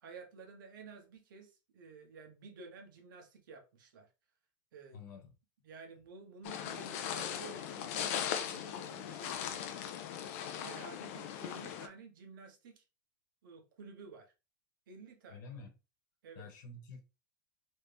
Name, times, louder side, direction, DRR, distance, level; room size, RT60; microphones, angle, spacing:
voice 1, 0.0-4.1 4.7-5.0 5.6-9.7 10.6-12.8 13.4-14.3 14.9-15.5 16.2-16.5, right 4 dB, 75° right, 1.1 m, -52 dB
voice 2, 4.9-5.3 15.3-15.7 16.3-17.0, left 4 dB, 60° left, 1.2 m, -49 dB
sound 1, 6.4-11.9, left 9 dB, 40° left, 0.4 m, -39 dB
3.2 x 2.7 x 3.4 m
supercardioid pair, 175°, 11 cm